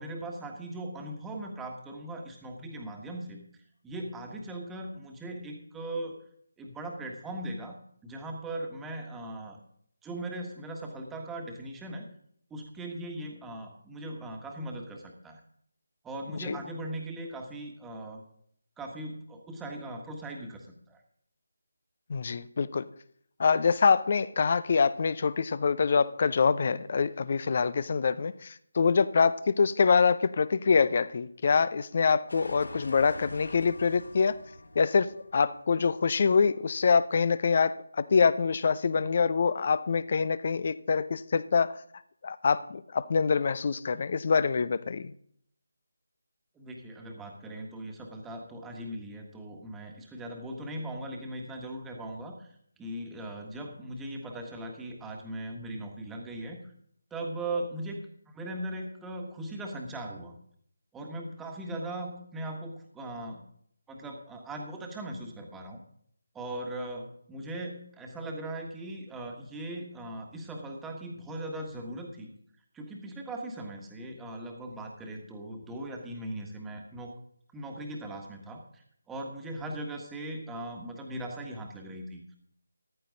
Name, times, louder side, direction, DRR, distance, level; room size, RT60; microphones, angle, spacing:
voice 1, 0.0-3.4 3.8-6.2 6.6-7.8 8.0-9.6 10.0-12.0 12.5-15.4 16.0-18.2 18.8-21.0 46.5-52.5 52.8-56.6 57.1-58.0 58.3-60.4 60.9-63.4 63.9-65.8 66.3-72.3 72.7-77.1 77.5-82.4, right 1 dB, 5° right, 2 dB, 1.6 m, -39 dB
voice 2, 22.1-22.9 23.4-34.4 34.8-35.1 35.3-41.8 42.2-45.1, left 5 dB, 35° left, 16 dB, 0.6 m, -25 dB
sound 1, 32.3-37.1, left 1 dB, 70° left, 3.0 m, -46 dB
14.5 x 13.0 x 3.9 m, 0.65 s
figure-of-eight pair, 155°, 0 cm